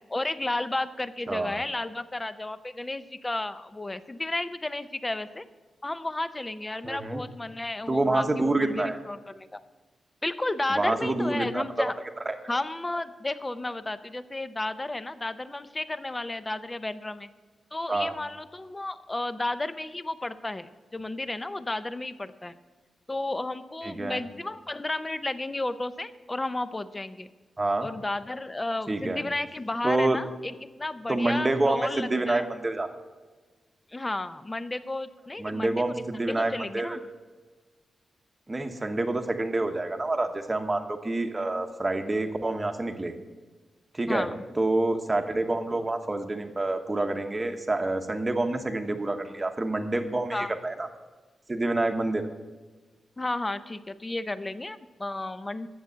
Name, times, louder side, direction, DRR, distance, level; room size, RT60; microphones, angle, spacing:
voice 1, 0.1-5.4 5.8-9.6 10.2-11.9 12.5-17.3 17.7-22.5 23.1-27.3 27.8-32.5 33.9-37.0 44.1-44.4 50.3-50.5 53.2-55.7, left 2 dB, 15° left, 13 dB, 0.5 m, -33 dB
voice 2, 6.8-7.2 7.9-9.0 10.7-11.9 12.3-12.4 17.9-18.2 23.8-24.2 27.6-27.9 28.9-29.2 29.8-30.2 31.1-32.9 35.4-37.0 38.5-43.1 43.9-44.3 44.6-50.9 51.5-52.2, right 2 dB, 20° right, 7 dB, 1.0 m, -27 dB
11.0 x 7.9 x 7.7 m, 1.3 s
wide cardioid pair, 160°, 0 cm